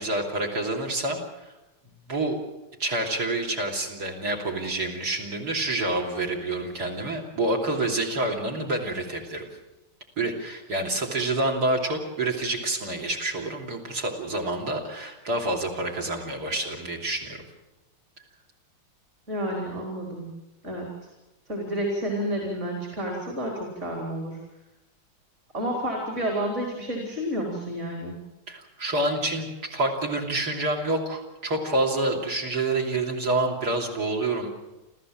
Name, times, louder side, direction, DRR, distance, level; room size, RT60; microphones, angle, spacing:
voice 1, 0.0-1.5 2.1-2.4 2.8-9.4 10.2-17.4 28.5-34.5, right 2 dB, 45° right, 1 dB, 3.6 m, -28 dB
voice 2, 19.3-20.3 20.6-20.9 21.5-24.4 25.5-28.2, equal, 30° right, -1 dB, 4.2 m, -30 dB
28.5 x 14.5 x 7.5 m, 1.0 s
omnidirectional pair, 2.4 m